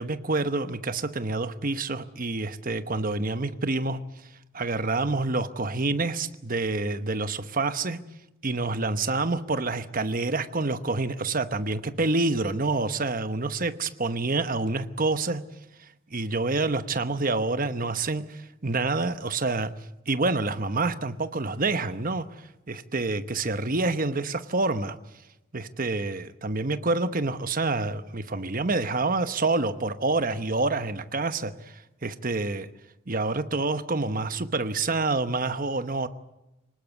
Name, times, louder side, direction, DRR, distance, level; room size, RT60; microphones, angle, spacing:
voice 1, 0.0-4.0 4.5-8.0 8.4-15.4 16.1-19.7 20.1-25.0 25.5-32.7 33.1-36.1, right 3 dB, 40° right, 11 dB, 1.0 m, -27 dB
24.5 x 19.5 x 8.2 m, 0.95 s
head